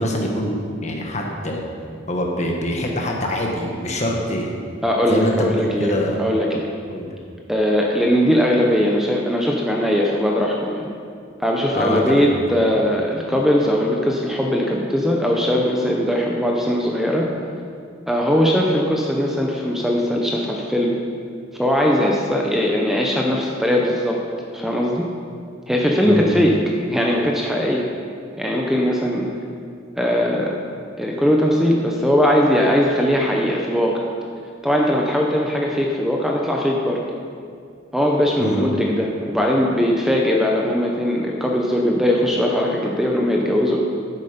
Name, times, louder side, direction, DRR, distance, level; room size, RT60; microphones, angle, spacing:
voice 1, 0.0-1.6 2.1-4.6 5.1-6.2 6.9-7.1 11.7-12.3 26.0-26.3 38.4-38.6, equal, 35° left, 0 dB, 1.4 m, -24 dB
voice 2, 4.8-6.7 7.5-10.9 11.4-17.3 18.1-21.0 21.6-24.2 24.5-25.1 25.7-26.6 26.9-27.9 28.3-29.3 30.0-30.6 31.0-34.1 34.6-37.0 37.9-43.8, equal, ahead, -1 dB, 0.7 m, -20 dB
10.5 x 8.5 x 5.2 m, 2.3 s
head